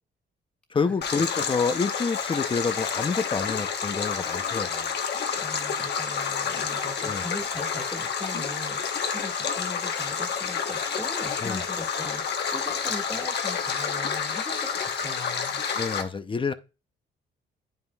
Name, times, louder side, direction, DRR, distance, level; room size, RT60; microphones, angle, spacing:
voice 1, 0.7-4.9 7.0-7.2 11.4-11.6 15.8-16.5, left 4 dB, 25° left, 0.6 m, -28 dB
Stream, 1.0-16.0, left 6 dB, 60° left, 1.2 m, -29 dB
voice 2, 5.4-15.6, left 1 dB, 5° left, 1.8 m, -40 dB
9.3 x 5.5 x 2.3 m
cardioid pair, 90°, 20 cm